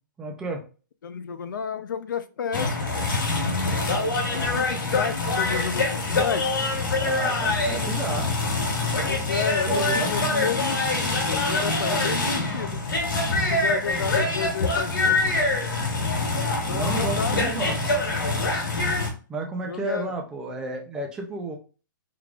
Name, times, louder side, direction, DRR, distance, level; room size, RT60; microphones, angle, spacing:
voice 1, 0.2-0.6 7.0-8.3 9.7-10.4 16.7-17.8 19.3-21.6, right 3 dB, 5° right, 0.5 m, -32 dB
voice 2, 1.0-3.1 4.0-6.4 9.0-12.8 13.3-15.5 16.6-17.5 19.6-20.1, left 7 dB, 70° left, 0.6 m, -32 dB
sound 1, 2.5-19.1, left 2 dB, 90° left, 1.8 m, -25 dB
4.7 x 3.3 x 2.5 m
hypercardioid pair, 170°, 11 cm